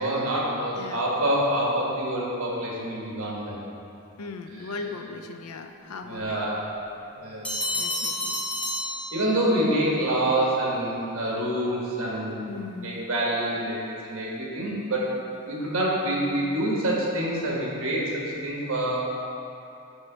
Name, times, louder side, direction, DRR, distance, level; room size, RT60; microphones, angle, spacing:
voice 1, 0.0-3.6 6.0-6.6 7.1-7.5 7.9-8.0 9.1-12.4 12.8-13.8 14.0-15.0 15.5-19.1, right 1 dB, 65° right, -4 dB, 1.5 m, -26 dB
voice 2, 0.8-1.1 4.2-6.4 7.8-8.4 12.5-13.0, left 3 dB, 75° left, 6 dB, 0.5 m, -38 dB
Bell, 7.4-9.7, left 1 dB, 5° left, 1.1 m, -30 dB
5.4 x 4.7 x 5.1 m, 2.7 s
head